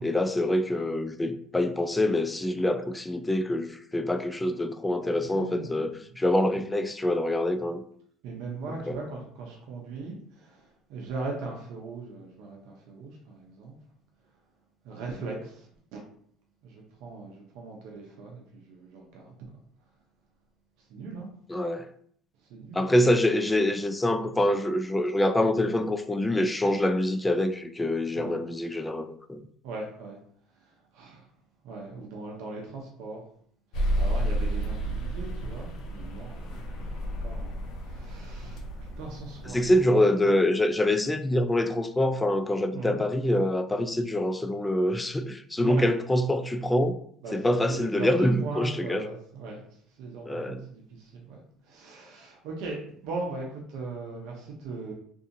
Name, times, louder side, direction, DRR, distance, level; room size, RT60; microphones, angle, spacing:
voice 1, 0.0-7.8 8.9-9.0 21.5-21.9 22.7-29.4 39.5-46.9 47.3-49.0 50.3-50.7, left 1 dB, 15° left, 0.3 m, -25 dB
voice 2, 5.1-6.0 6.4-6.6 8.2-13.8 14.8-16.0 16.6-19.3 20.8-21.3 22.5-22.9 28.1-28.4 29.6-30.2 30.6-31.3 31.6-33.2 34.0-37.0 37.2-38.7 39.0-40.0 42.7-43.0 45.6-45.9 47.2-49.6 49.9-52.8 53.0-54.9, right 3 dB, 70° right, 0.6 m, -39 dB
sound 1, 33.7-39.8, right 1 dB, 65° left, 0.6 m, -31 dB
2.6 x 2.4 x 2.6 m
supercardioid pair, 80°, 0 cm